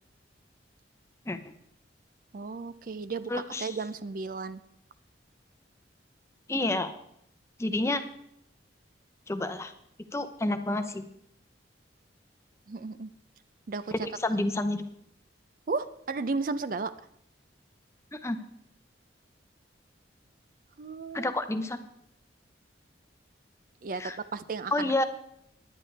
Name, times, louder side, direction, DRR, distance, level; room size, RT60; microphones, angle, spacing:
voice 1, 2.3-4.6 10.5-10.6 12.7-13.1 13.7-13.9 15.7-16.9 20.8-21.3 23.8-24.9, right 4 dB, 45° right, 13 dB, 0.4 m, -34 dB
voice 2, 3.3-3.7 6.5-6.9 7.6-8.0 9.3-9.7 10.1-11.0 13.9-14.8 18.1-18.4 21.1-21.8 24.0-24.2 24.7-25.0, left 2 dB, 15° left, 9 dB, 0.7 m, -29 dB
19.0 x 10.0 x 3.3 m, 0.74 s
head